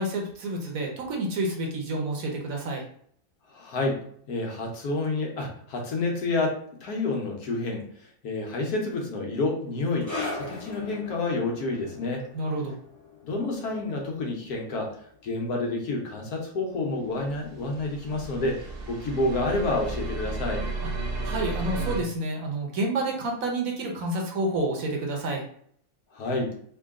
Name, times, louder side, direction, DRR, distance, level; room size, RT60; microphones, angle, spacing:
voice 1, 0.0-2.8 12.3-12.7 20.8-20.9 21.2-25.4, right 2 dB, 65° right, 1 dB, 1.1 m, -29 dB
voice 2, 3.5-4.0 4.3-7.8 8.2-12.3 13.2-14.9 15.2-20.6 26.1-26.5, left 2 dB, 75° left, 1 dB, 1.3 m, -29 dB
sound 1, 10.0-17.0 17.3-17.5 18.2-18.3, left 2 dB, 15° left, 0.9 m, -40 dB
sound 2, 17.2-22.0, right 2 dB, 85° right, 0.5 m, -33 dB
3.6 x 2.3 x 3.6 m, 0.62 s
omnidirectional pair, 1.7 m